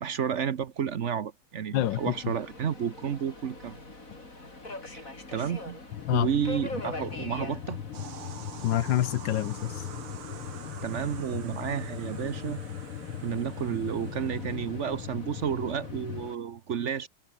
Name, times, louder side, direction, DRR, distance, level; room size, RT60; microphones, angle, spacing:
voice 1, 0.0-3.8 4.9-5.8 6.1-7.8 10.8-12.6 13.2-17.1, right 8 dB, 55° right, 0.8 m, -31 dB
voice 2, 1.7-2.3 6.1-6.3 8.6-9.8, left 13 dB, 65° left, 1.4 m, -27 dB
Subway metro underground, 1.7-16.3, left 2 dB, 35° left, 5.7 m, -44 dB
sound 1, 5.9-16.3, left 10 dB, 85° left, 2.3 m, -39 dB
sound 2, 7.9-14.9, right 9 dB, 85° right, 2.4 m, -47 dB
omnidirectional pair, 2.3 m